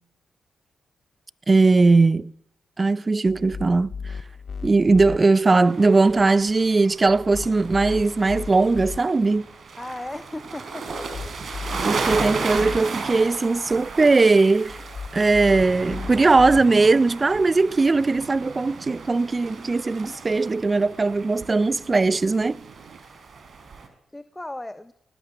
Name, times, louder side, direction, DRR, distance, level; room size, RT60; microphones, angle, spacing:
voice 1, 1.5-2.3 2.8-3.9 4.6-9.5 11.8-14.8 15.1-22.6, right 3 dB, 35° right, 0.8 m, -19 dB
sound 1, 3.3-5.2 7.1-9.0 10.9-12.8 14.7-16.6, left 5 dB, 60° left, 1.0 m, -36 dB
sound 2, 5.6-23.9, right 4 dB, 65° right, 4.3 m, -35 dB
voice 2, 9.8-10.9 24.1-24.9, left 1 dB, 15° left, 1.2 m, -35 dB
sound 3, 17.9-23.0, right 7 dB, 80° right, 2.5 m, -49 dB
20.5 x 18.5 x 9.2 m
supercardioid pair, 50°, 0 cm